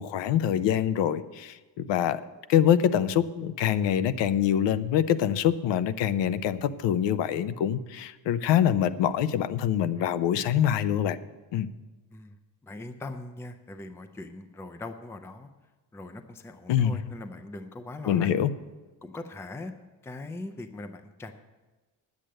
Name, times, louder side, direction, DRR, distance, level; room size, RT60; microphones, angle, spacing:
voice 1, 0.0-2.2 2.5-11.2 11.5-11.7 16.7-17.0 18.1-18.5, left 10 dB, 75° left, 14 dB, 0.7 m, -25 dB
voice 2, 12.6-15.5 15.9-18.4 19.0-19.7 20.0-21.3, left 2 dB, 5° left, 9 dB, 0.4 m, -40 dB
10.0 x 8.4 x 7.6 m, 1.2 s
cardioid pair, 175°, 44 cm